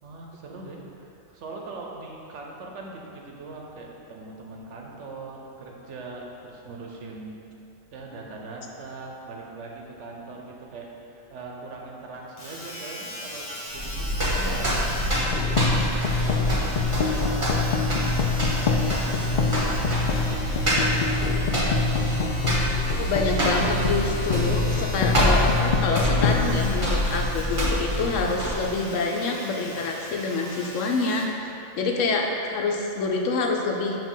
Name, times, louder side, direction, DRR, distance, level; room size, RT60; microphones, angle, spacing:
voice 1, 0.0-7.4 7.9-14.1 14.4-21.2, right 3 dB, 75° right, -1 dB, 1.1 m, -41 dB
Domestic sounds home sounds, 12.4-31.4 32.0-32.1, equal, 35° left, 1.4 m, -39 dB
sound 1, 13.7-28.8, equal, 25° right, 1.2 m, -26 dB
sound 2, 15.1-27.5, left 5 dB, 60° left, 0.5 m, -27 dB
voice 2, 23.0-31.3 31.8-34.0, left 3 dB, 85° left, 2 dB, 1.0 m, -26 dB
7.1 x 2.9 x 5.5 m, 2.8 s
omnidirectional pair, 1.3 m